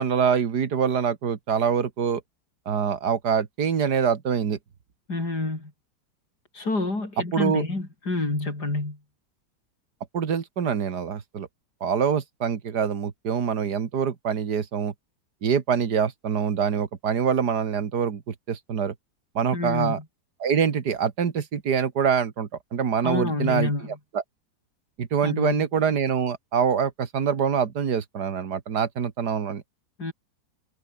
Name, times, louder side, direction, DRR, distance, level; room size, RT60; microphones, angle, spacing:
voice 1, 0.0-2.2 2.7-4.6 7.3-7.6 10.1-11.5 11.8-14.9 15.4-18.9 19.4-20.0 20.4-23.7 24.1-24.2 25.0-29.6, right 7 dB, 80° right, 2.3 m, -25 dB
voice 2, 5.1-5.7 6.5-9.0 19.5-20.0 23.0-24.0 25.2-25.7 30.0-30.1, left 2 dB, 80° left, 6.6 m, -28 dB
omnidirectional pair, 1.7 m